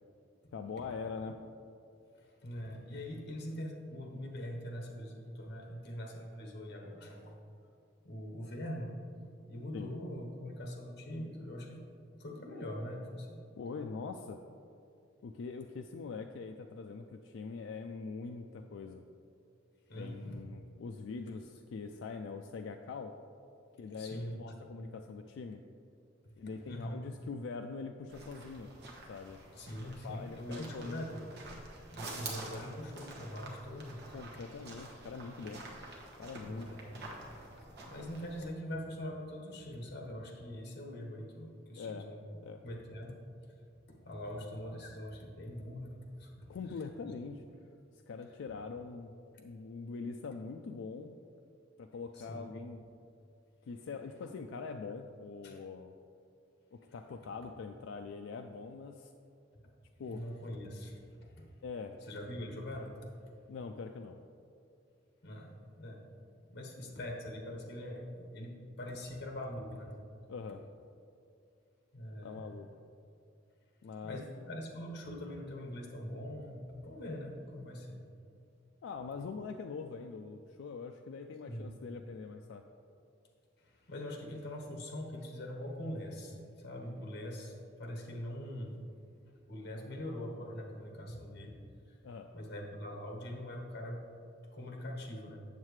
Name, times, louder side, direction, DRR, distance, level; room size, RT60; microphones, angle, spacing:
voice 1, 0.5-1.3 9.7-9.9 13.6-14.4 15.2-19.0 19.9-23.1 23.8-25.6 26.4-28.7 29.1-29.4 29.8-31.0 34.1-35.6 36.2-36.9 41.8-42.1 42.4-42.6 46.5-47.4 48.1-51.2 51.8-52.8 53.7-56.0 56.9-59.1 60.0-60.2 61.6-62.0 63.5-64.2 70.3-70.6 72.2-72.7 73.8-74.2 78.8-82.6 92.0-92.3, left 4 dB, 75° left, 4 dB, 0.3 m, -43 dB
voice 2, 2.1-7.3 8.0-11.8 12.2-13.4 19.9-20.4 23.9-24.4 24.7-24.9 26.2-26.3 26.7-27.0 29.5-31.3 31.9-34.0 36.4-37.0 37.6-42.2 42.6-43.2 43.4-43.5 44.0-47.1 52.1-52.5 55.4-55.6 60.1-61.5 62.0-63.0 65.2-65.5 65.8-66.0 66.5-70.0 71.9-72.5 73.8-78.0 81.5-81.7 83.6-88.8 89.5-91.6 91.9-92.0 92.3-94.0 94.5-95.4, equal, 60° left, 1 dB, 1.1 m, -43 dB
sound 1, 28.1-38.5, right 2 dB, 60° right, 1.2 m, -48 dB
7.4 x 7.3 x 3.2 m, 2.4 s
head